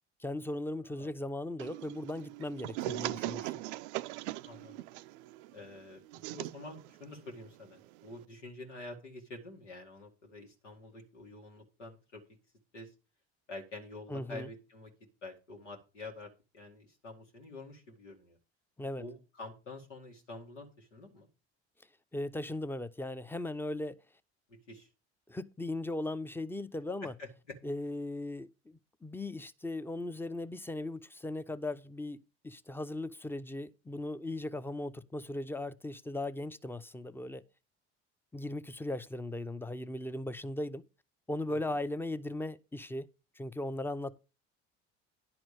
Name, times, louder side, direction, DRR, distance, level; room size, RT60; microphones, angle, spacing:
voice 1, 0.2-3.5 14.1-14.5 18.8-19.0 22.1-24.0 25.3-27.1 27.6-32.2 32.4-37.4 38.3-40.8 41.3-43.1 43.4-44.2, left 1 dB, 5° left, 0.6 m, -38 dB
sound 1, 1.6-8.2, right 17 dB, 70° right, 0.5 m, -41 dB
voice 2, 4.4-4.8 5.5-6.0 6.3-12.2 12.7-12.9 13.5-14.9 15.2-18.4 19.0-21.3 24.5-24.9 27.0-27.6 41.5-41.8, left 2 dB, 90° left, 2.1 m, -47 dB
10.5 x 4.3 x 6.6 m
hypercardioid pair, 65°, 35 cm